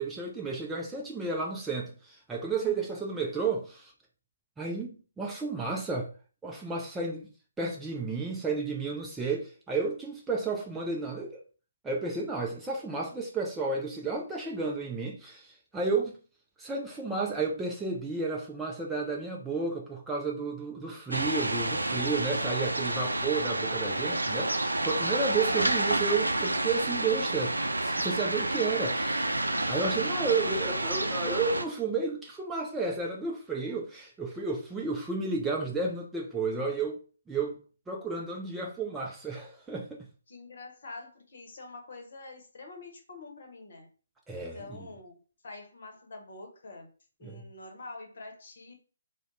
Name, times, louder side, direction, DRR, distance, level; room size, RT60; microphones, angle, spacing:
voice 1, 0.0-3.9 4.6-6.1 6.4-7.3 7.6-11.4 11.8-16.2 16.6-29.3 29.7-37.6 37.9-40.0 44.3-44.9 47.2-47.4, right 4 dB, 5° right, 0.4 m, -32 dB
sound 1, 21.1-31.6, right 2 dB, 75° right, 0.4 m, -29 dB
voice 2, 40.3-43.9 44.5-45.2 45.4-46.9 47.2-48.7, left 3 dB, 50° left, 0.9 m, -47 dB
2.5 x 2.1 x 3.9 m
figure-of-eight pair, 140°, 0 cm